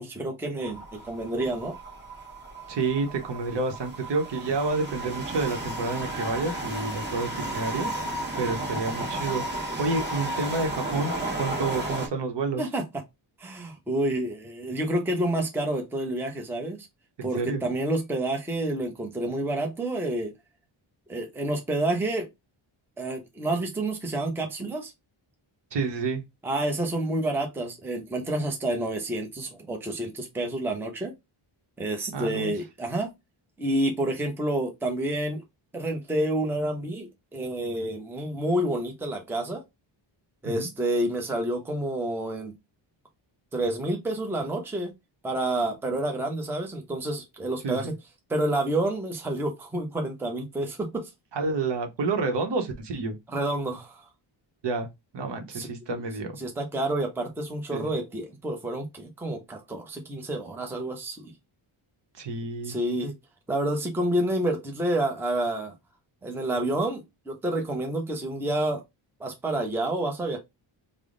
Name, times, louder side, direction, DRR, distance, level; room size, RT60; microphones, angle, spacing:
voice 1, 0.0-1.7 11.5-11.7 12.6-12.8 13.4-16.9 17.2-20.3 21.1-22.3 23.0-24.9 26.4-31.1 31.8-33.1 33.6-35.4 35.7-39.6 40.4-42.5 43.5-44.9 45.2-47.9 48.3-51.1 53.3-54.0 55.5-56.0 56.4-61.3 62.6-63.1 63.5-65.7 66.2-68.8 69.2-70.4, right 1 dB, 5° right, 0.6 m, -29 dB
sound 1, 0.6-12.1, right 1 dB, 20° right, 1.0 m, -33 dB
voice 2, 2.7-7.9 8.3-11.1 11.4-12.6 17.2-17.6 25.7-26.2 32.1-32.5 40.4-40.7 47.6-47.9 51.3-53.2 54.6-54.9 55.1-56.4 57.7-57.9 62.2-62.8, right 3 dB, 60° right, 0.9 m, -29 dB
3.4 x 2.0 x 3.6 m
wide cardioid pair, 140°, 48 cm